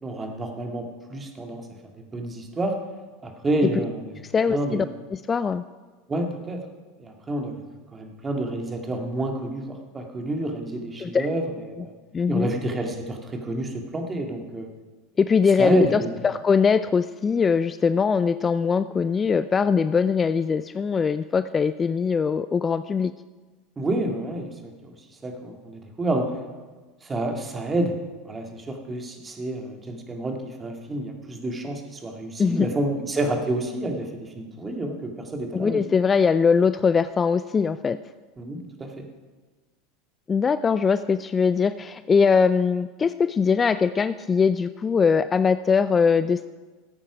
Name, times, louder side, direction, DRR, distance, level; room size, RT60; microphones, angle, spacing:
voice 1, 0.0-1.7 2.1-2.8 3.2-4.1 4.5-4.9 6.1-6.6 7.0-7.6 7.9-11.9 12.3-14.7 15.6-16.1 23.8-24.9 25.2-26.3 27.0-28.0 28.2-35.8 38.4-39.0, right 1 dB, 20° right, 3 dB, 2.0 m, -29 dB
voice 2, 4.3-4.9 5.1-5.6 11.0-11.3 12.1-12.5 15.2-23.1 32.4-32.7 35.5-38.0 40.3-46.5, left 5 dB, 25° left, 13 dB, 0.4 m, -21 dB
14.5 x 8.7 x 4.9 m, 1.3 s
hypercardioid pair, 95°, 0 cm